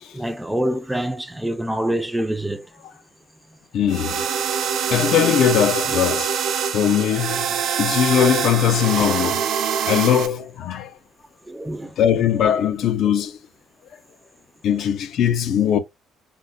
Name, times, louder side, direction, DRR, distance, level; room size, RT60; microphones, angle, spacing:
voice 1, 0.1-2.6 11.5-11.9, right 1 dB, 5° right, 0.4 m, -25 dB
voice 2, 3.7-6.4 6.7-9.5 9.8-10.9 12.0-13.4 14.6-15.8, left 9 dB, 65° left, 0.4 m, -20 dB
sound 1, 3.9-10.3, right 7 dB, 65° right, 0.5 m, -24 dB
3.6 x 2.1 x 2.2 m
cardioid pair, 130°, 0 cm